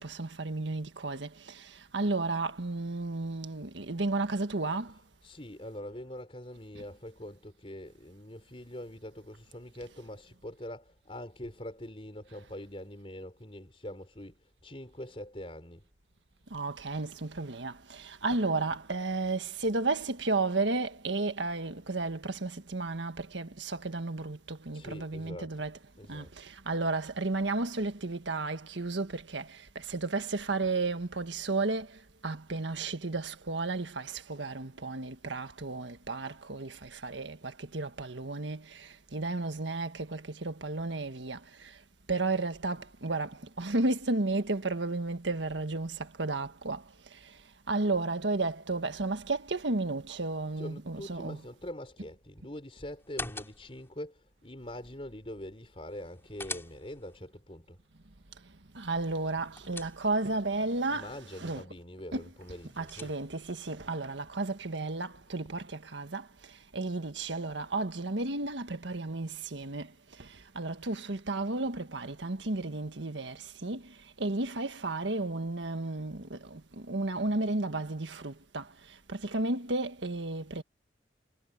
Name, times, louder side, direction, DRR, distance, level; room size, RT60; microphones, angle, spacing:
voice 1, 0.0-1.3 1.9-4.9 16.5-25.8 26.1-29.5 29.7-31.9 32.2-38.6 39.1-41.4 42.1-46.8 47.7-51.4 58.7-61.1 61.4-61.6 62.1-62.2 62.8-66.2 66.7-69.9 70.5-73.8 74.2-76.6 76.9-78.6 79.1-80.6, right 2 dB, 85° right, 1.6 m, -33 dB
voice 2, 4.9-15.9 24.7-25.7 26.0-26.3 50.6-57.8 60.9-63.2, left 1 dB, 30° left, 4.2 m, -44 dB
sound 1, 53.0-53.9 55.9-57.2 59.1-60.4 62.4-63.5, left 3 dB, 15° left, 5.2 m, -44 dB
head